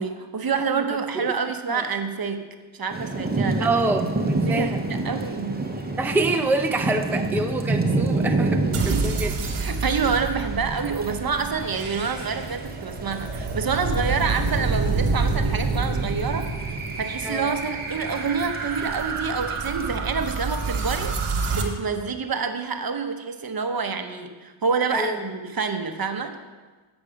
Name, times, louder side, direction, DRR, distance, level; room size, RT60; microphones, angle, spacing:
voice 1, 0.0-2.5 2.7-3.7 4.4-5.6 8.9-9.1 9.6-16.7 17.0-21.2 21.5-26.4, right 5 dB, 45° right, 7 dB, 0.8 m, -27 dB
voice 2, 0.5-0.8 1.2-1.3 1.7-1.9 3.6-4.8 6.0-9.3 17.2-17.5 24.9-25.2, right 2 dB, 5° right, 4 dB, 0.5 m, -26 dB
Thunder / Rain, 2.9-19.9, right 2 dB, 20° right, 0.9 m, -30 dB
sound 1, 8.7-21.6, right 3 dB, 85° right, 1.0 m, -28 dB
8.4 x 6.1 x 5.1 m, 1.3 s
cardioid pair, 60°, 49 cm